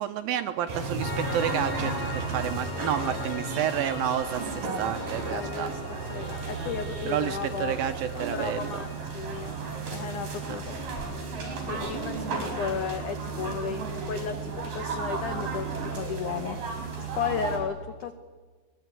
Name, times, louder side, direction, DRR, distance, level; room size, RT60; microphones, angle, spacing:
voice 1, 0.0-5.7 7.1-8.8 10.5-10.6, right 10 dB, 75° right, 8 dB, 2.3 m, -30 dB
sound 1, 0.7-17.6, right 4 dB, 50° right, 6.1 m, -34 dB
Piano, 1.0-12.2, left 4 dB, 55° left, 5.1 m, -42 dB
voice 2, 2.7-3.3 5.1-5.8 6.1-7.8 8.2-9.6 9.9-10.8 11.7-16.6 17.0-18.1, left 7 dB, 90° left, 10 dB, 1.7 m, -34 dB
22.0 x 20.5 x 9.7 m, 1.5 s
omnidirectional pair, 5.0 m